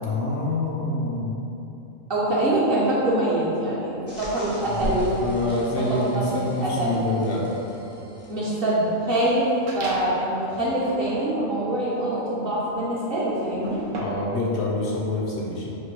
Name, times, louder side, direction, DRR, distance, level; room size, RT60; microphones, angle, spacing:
voice 1, 0.0-1.4 4.7-7.5 14.0-15.8, left 2 dB, 65° left, -4 dB, 0.8 m, -26 dB
voice 2, 2.1-5.5 5.8-6.3 6.6-7.0 8.3-9.5 9.7-13.8, right 1 dB, 50° right, -8 dB, 0.9 m, -24 dB
sound 1, 4.1-8.9, equal, 25° left, 0.6 m, -38 dB
sound 2, 9.7-10.3 10.7-14.4, right 1 dB, 75° right, 1.0 m, -38 dB
4.5 x 2.2 x 4.4 m, 2.9 s
omnidirectional pair, 1.4 m